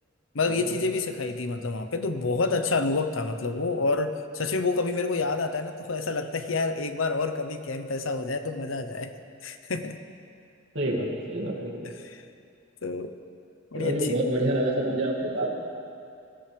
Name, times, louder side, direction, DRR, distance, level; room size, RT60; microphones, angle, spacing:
voice 1, 0.3-9.1 9.4-10.0 12.0-12.2 12.8-13.1 13.7-14.2, left 3 dB, 80° left, 8 dB, 0.9 m, -28 dB
voice 2, 10.7-11.8 13.8-15.6, right 1 dB, 65° right, -3 dB, 2.3 m, -27 dB
22.0 x 13.5 x 3.4 m, 2.5 s
head